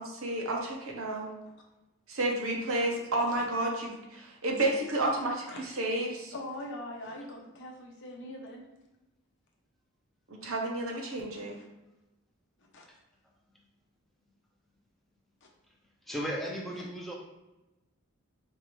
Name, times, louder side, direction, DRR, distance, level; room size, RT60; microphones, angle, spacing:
voice 1, 0.0-1.3 2.1-6.3 10.3-11.5, right 1 dB, 70° right, 0 dB, 0.8 m, -31 dB
voice 2, 6.3-8.6 11.3-11.6 12.6-12.8 15.4-15.5, left 1 dB, 55° left, 0 dB, 0.7 m, -42 dB
voice 3, 16.1-17.2, equal, ahead, -3 dB, 0.6 m, -35 dB
4.5 x 2.5 x 3.0 m, 1.0 s
head